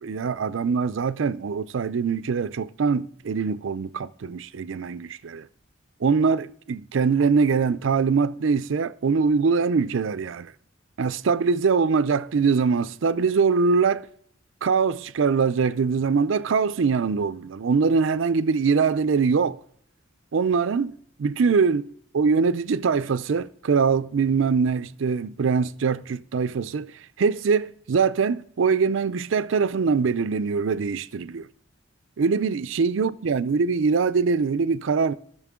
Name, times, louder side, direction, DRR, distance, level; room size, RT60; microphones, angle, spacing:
voice 1, 0.0-5.5 6.0-10.5 11.0-14.1 14.6-19.6 20.3-20.9 21.2-21.9 22.1-26.9 27.2-31.4 32.2-35.1, right 5 dB, 70° right, 0.4 m, -23 dB
16.5 x 6.3 x 3.7 m
head